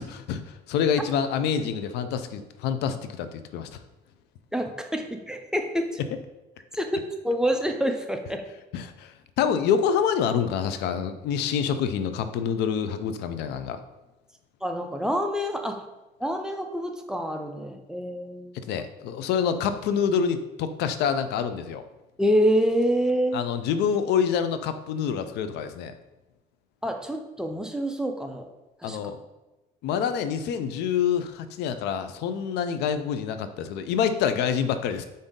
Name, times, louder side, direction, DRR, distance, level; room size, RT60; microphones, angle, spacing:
voice 1, 0.0-3.8 8.7-13.8 18.7-21.8 23.3-25.9 28.8-29.2 29.8-35.0, left 7 dB, 80° left, 10 dB, 0.4 m, -27 dB
voice 2, 4.5-6.0 6.7-8.4 14.6-15.9 16.2-18.6 22.2-23.5 26.8-28.5 28.8-29.0, equal, 5° right, 5 dB, 0.4 m, -27 dB
5.1 x 2.6 x 3.6 m, 1.0 s
cardioid pair, 110°, 17 cm